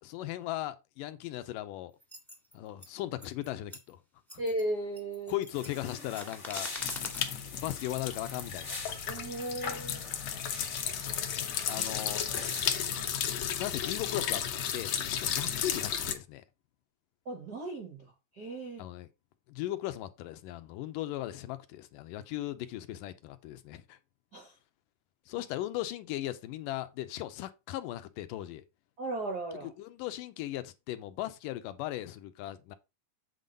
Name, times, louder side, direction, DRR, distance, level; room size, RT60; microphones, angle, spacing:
voice 1, 0.0-1.9 2.5-4.0 4.3-4.4 5.3-6.7 7.5-8.8 11.6-12.2 13.2-14.4 14.7-16.4 18.8-19.1 19.5-24.0 25.3-28.6 29.6-32.8, left 14 dB, 80° left, 2.2 m, -38 dB
sound 1, 2.0-2.9 3.2-3.9 4.3-4.6 5.0-7.3 7.7-8.0, equal, ahead, 0.7 m, -46 dB
voice 2, 4.4-5.4 9.1-10.0 11.7-11.8 17.2-18.1 18.3-18.8 24.3-24.6 29.0-29.7, right 1 dB, 90° right, 0.8 m, -36 dB
sound 2, 5.5-13.0, left 3 dB, 35° left, 1.1 m, -43 dB
sound 3, 6.8-16.1, left 9 dB, 65° left, 1.9 m, -34 dB
8.4 x 3.9 x 5.2 m
omnidirectional pair, 4.0 m